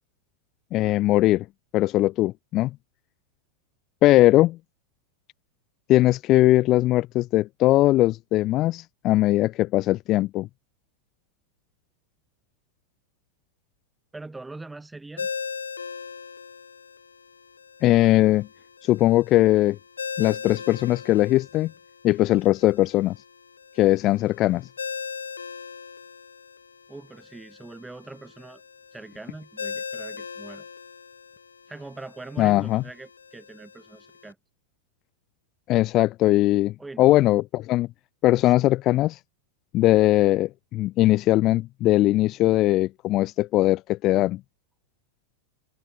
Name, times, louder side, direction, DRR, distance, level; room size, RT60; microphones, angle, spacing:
voice 1, 0.7-1.5 1.7-2.7 4.0-4.6 5.9-10.5 17.8-18.5 18.8-19.8 20.2-21.7 22.0-23.2 23.8-24.7 32.4-32.8 35.7-37.9 38.2-39.2 39.7-44.4, left 16 dB, 35° left, 0.7 m, -20 dB
voice 2, 14.1-15.3 26.9-28.6 28.9-30.7 31.7-34.4 36.8-37.3 38.4-38.5, right 2 dB, 10° right, 7.9 m, -42 dB
Ringtone, 15.2-34.3, left 6 dB, 75° left, 4.1 m, -39 dB
figure-of-eight pair, 90°, 0 cm